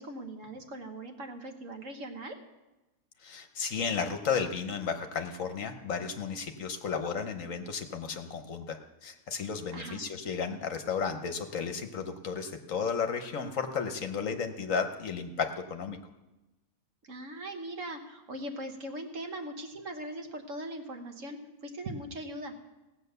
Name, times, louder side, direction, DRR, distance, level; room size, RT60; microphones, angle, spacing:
voice 1, 0.0-2.4 9.7-10.0 17.1-22.5, right 1 dB, 55° right, 5 dB, 1.5 m, -40 dB
voice 2, 3.2-16.0, left 6 dB, 60° left, 7 dB, 1.2 m, -33 dB
17.0 x 8.0 x 6.7 m, 1.1 s
omnidirectional pair, 1.7 m